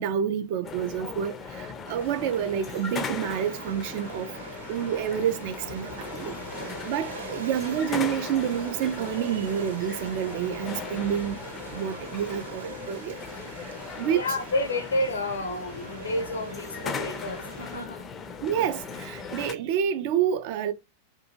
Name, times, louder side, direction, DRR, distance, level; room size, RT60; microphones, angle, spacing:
voice 1, 0.0-4.3 4.7-6.3 6.9-11.4 11.7-13.2 14.0-14.2 18.4-20.7, right 9 dB, 50° right, 0.3 m, -28 dB
sound 1, 0.6-19.5, left 5 dB, 25° left, 0.4 m, -38 dB
sound 2, 1.9-17.8, right 3 dB, 70° right, 0.7 m, -42 dB
voice 2, 14.1-18.1, left 2 dB, 75° left, 0.6 m, -30 dB
2.6 x 2.3 x 2.9 m
figure-of-eight pair, 90°, 0 cm